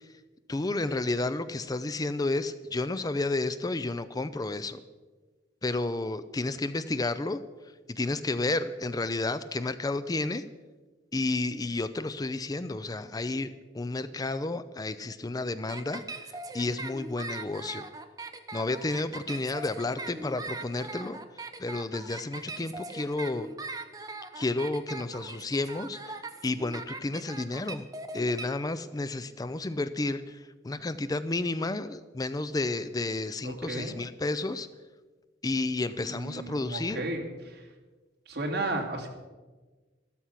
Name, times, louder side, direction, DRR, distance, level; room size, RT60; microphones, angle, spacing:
voice 1, 0.5-4.8 5.6-7.4 7.9-10.4 11.1-16.0 16.3-17.8 18.5-21.2 21.6-23.5 24.4-27.9 28.1-34.7 35.4-37.0, left 2 dB, 20° left, 13 dB, 0.4 m, -31 dB
sound 1, 15.7-28.4, right 3 dB, 20° right, 0.9 m, -40 dB
voice 2, 33.4-34.0 35.5-35.6 36.0-37.6 38.3-39.1, right 2 dB, 60° right, 1 dB, 2.5 m, -34 dB
13.0 x 12.5 x 5.8 m, 1.3 s
head